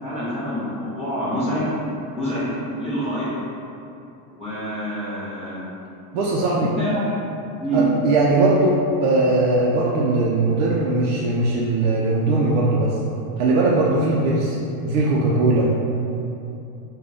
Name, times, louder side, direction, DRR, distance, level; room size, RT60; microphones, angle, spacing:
voice 1, 0.0-1.7 2.1-2.5 2.8-3.3 4.3-5.6 6.2-7.1 7.6-7.8, equal, 15° left, -15 dB, 0.5 m, -27 dB
voice 2, 6.1-6.7 7.7-13.0 13.4-14.6 14.8-15.7, right 2 dB, 55° right, -5 dB, 0.5 m, -19 dB
3.6 x 2.2 x 3.4 m, 2.7 s
supercardioid pair, 160°, 46 cm